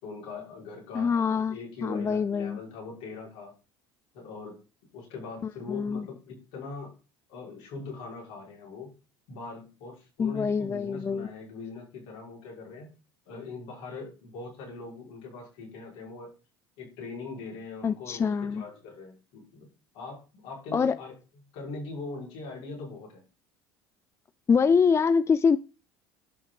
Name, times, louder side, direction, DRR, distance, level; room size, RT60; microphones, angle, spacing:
voice 1, 0.0-3.5 4.1-4.6 4.9-6.9 7.3-8.9 9.3-12.9 13.3-16.3 16.8-19.7 19.9-21.1 21.5-23.2, left 3 dB, 65° left, 5.6 m, -41 dB
voice 2, 0.9-2.6 5.4-6.1 10.2-11.3 17.8-18.6 20.7-21.0 24.5-25.6, left 5 dB, 20° left, 0.4 m, -25 dB
11.5 x 5.9 x 4.1 m
hypercardioid pair, 70°, 12 cm